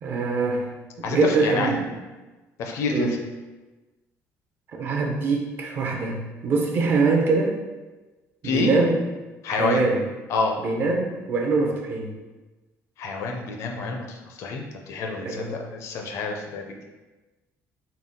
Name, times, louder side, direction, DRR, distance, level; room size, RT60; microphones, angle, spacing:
voice 1, 0.0-0.7 1.1-1.9 2.9-3.2 4.7-7.6 8.4-9.0 9.5-10.0 10.6-12.1 15.2-15.5, right 3 dB, 40° right, 1 dB, 0.5 m, -23 dB
voice 2, 1.0-1.7 2.6-3.2 8.4-8.7 9.4-9.8 10.3-10.6 13.0-16.8, left 4 dB, 60° left, 2 dB, 0.4 m, -28 dB
3.8 x 2.2 x 3.6 m, 1.2 s
cardioid pair, 175°, 6 cm